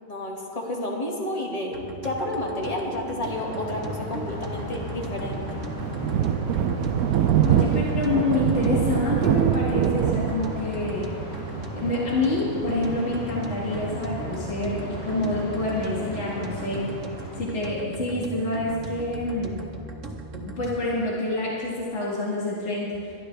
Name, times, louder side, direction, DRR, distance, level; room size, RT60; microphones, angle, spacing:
voice 1, 0.1-5.6, left 1 dB, 25° left, -2 dB, 2.0 m, -31 dB
sound 1, 1.7-20.9, right 2 dB, 55° right, 1.5 m, -38 dB
sound 2, 3.2-17.4, equal, 85° left, 4.3 m, -36 dB
Thunder, 4.8-13.9, right 10 dB, 75° right, 1.0 m, -25 dB
voice 2, 7.5-11.1 11.7-17.0 17.4-19.5 20.6-23.0, left 2 dB, 50° left, -6 dB, 2.3 m, -27 dB
21.5 x 12.5 x 3.3 m, 2.6 s
omnidirectional pair, 1.5 m